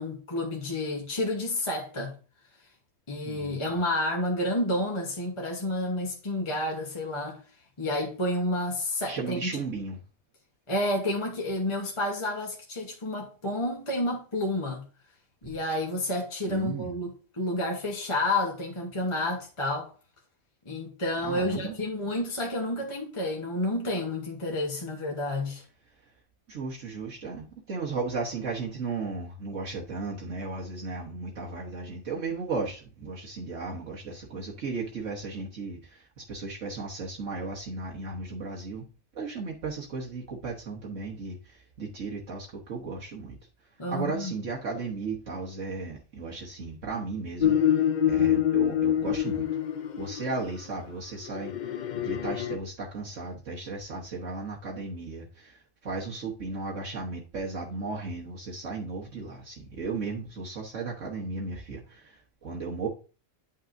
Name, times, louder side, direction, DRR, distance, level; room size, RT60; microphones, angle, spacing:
voice 1, 0.0-2.1 3.1-7.4 7.8-9.5 10.7-14.8 15.4-19.9 20.6-25.6 43.8-44.3, left 1 dB, 25° left, 1.1 m, -30 dB
voice 2, 3.2-3.7 9.1-10.0 16.5-16.9 21.2-21.8 26.5-38.9 39.1-43.4 43.9-49.5 50.0-62.9, right 3 dB, 60° right, 1.5 m, -35 dB
sound 1, 47.4-50.3 51.3-52.6, left 10 dB, 75° left, 0.4 m, -25 dB
9.8 x 5.7 x 2.6 m
omnidirectional pair, 1.5 m